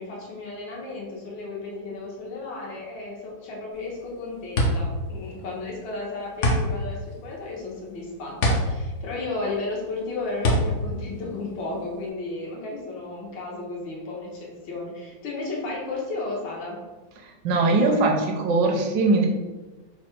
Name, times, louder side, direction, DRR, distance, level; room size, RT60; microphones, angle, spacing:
voice 1, 0.0-16.8, left 3 dB, 85° left, -2 dB, 1.7 m, -33 dB
sound 1, 3.7-12.1, equal, 60° left, 0.8 m, -26 dB
voice 2, 17.2-19.3, right 3 dB, 75° right, 1 dB, 1.2 m, -21 dB
4.2 x 2.2 x 4.4 m, 1.2 s
omnidirectional pair, 2.0 m